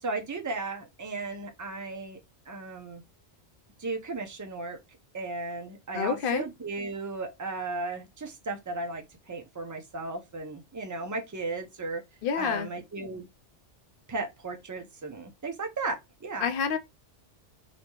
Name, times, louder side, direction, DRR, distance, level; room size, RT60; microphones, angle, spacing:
voice 1, 0.0-2.2 2.5-3.0 3.8-4.8 5.1-12.0 12.4-13.3 14.1-16.5, right 3 dB, 20° right, 0.5 m, -35 dB
voice 2, 5.9-6.5 12.2-12.7 16.4-16.8, left 6 dB, 60° left, 0.7 m, -28 dB
4.2 x 2.8 x 2.9 m
omnidirectional pair, 1.2 m